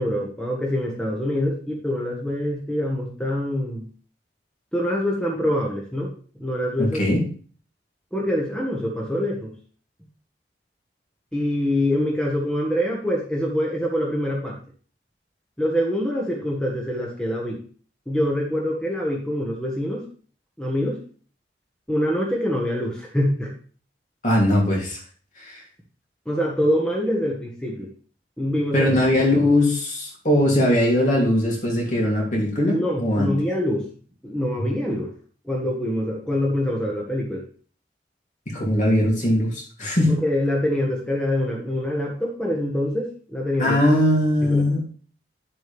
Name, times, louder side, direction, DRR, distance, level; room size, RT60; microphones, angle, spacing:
voice 1, 0.0-3.9 4.7-7.2 8.1-9.5 11.3-14.6 15.6-17.6 18.1-20.0 20.6-21.0 21.9-23.5 26.2-27.9 28.4-28.9 32.7-33.9 34.2-35.1 35.4-37.4 40.1-43.8 44.5-44.6, left 1 dB, 5° left, -3 dB, 1.6 m, -25 dB
voice 2, 6.8-7.2 24.2-25.0 25.4-25.6 28.7-33.3 38.5-40.2 43.6-44.8, left 1 dB, 45° left, -2 dB, 3.2 m, -20 dB
10.5 x 7.6 x 3.5 m, 0.42 s
head